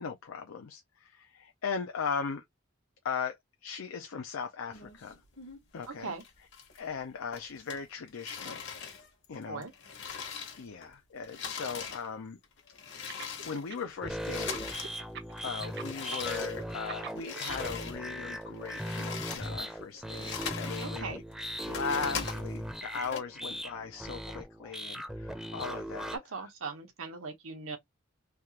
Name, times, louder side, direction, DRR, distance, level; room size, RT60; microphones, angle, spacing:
voice 1, 0.0-2.4 3.0-3.4 3.6-5.2 5.7-6.1 6.8-8.6 9.3-9.6 10.4-12.4 13.4-14.7 15.4-21.2 21.6-26.1, left 5 dB, 80° left, 0.5 m, -38 dB
sound 1, 4.7-5.9 6.2-7.0 7.3-10.9 11.2-15.0 15.3-18.0 18.4-20.9 21.3-23.2, left 6 dB, 60° left, 1.1 m, -41 dB
voice 2, 5.9-6.2 9.5-9.7 20.8-21.2 26.1-27.8, right 4 dB, 85° right, 1.1 m, -39 dB
sound 2, 13.1-14.1 14.4-17.7, right 6 dB, 60° right, 0.7 m, -43 dB
sound 3, 14.0-26.2, equal, ahead, 0.6 m, -39 dB
3.4 x 2.4 x 2.8 m
head